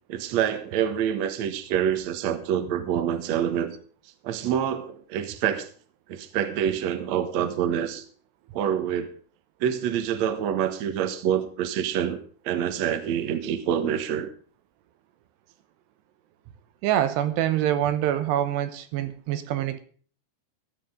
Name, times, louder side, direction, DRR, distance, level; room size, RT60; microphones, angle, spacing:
voice 1, 0.1-3.7 4.2-5.7 6.1-8.0 8.5-9.1 9.6-12.2 12.4-14.3, right 9 dB, 60° right, 1.9 m, -26 dB
voice 2, 16.8-19.8, right 11 dB, 75° right, 3.0 m, -25 dB
16.0 x 13.0 x 3.8 m
omnidirectional pair, 5.1 m